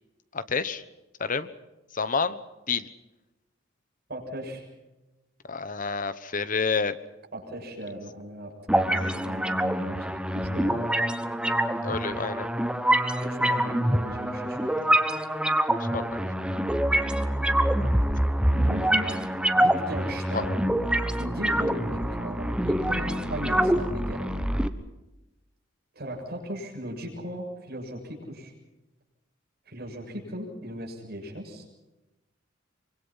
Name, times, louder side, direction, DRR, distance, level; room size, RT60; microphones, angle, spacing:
voice 1, 0.3-0.8 1.2-1.5 1.9-2.4 2.7-2.9 5.4-7.0 11.8-12.5 15.9-16.1 20.3-20.5, left 5 dB, 45° left, 13 dB, 1.1 m, -28 dB
voice 2, 4.1-4.6 7.3-8.5 8.9-10.9 13.2-14.9 16.9-17.2 18.5-19.3 19.5-20.7 21.2-24.3 25.9-28.5 29.7-31.6, equal, 55° right, 0 dB, 7.2 m, -37 dB
sound 1, 8.7-24.7, right 1 dB, 5° right, 1.1 m, -25 dB
25.0 x 24.0 x 5.8 m, 1.0 s
head